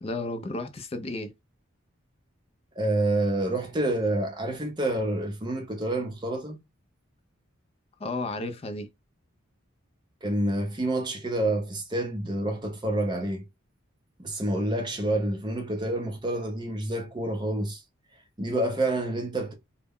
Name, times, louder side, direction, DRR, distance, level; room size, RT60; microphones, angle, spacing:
voice 1, 0.0-1.3 8.0-8.9, left 2 dB, 30° left, 0.3 m, -33 dB
voice 2, 2.8-6.6 10.2-13.4 14.2-17.8 18.4-19.5, right 1 dB, 20° right, 0.6 m, -28 dB
2.1 x 2.0 x 3.4 m
head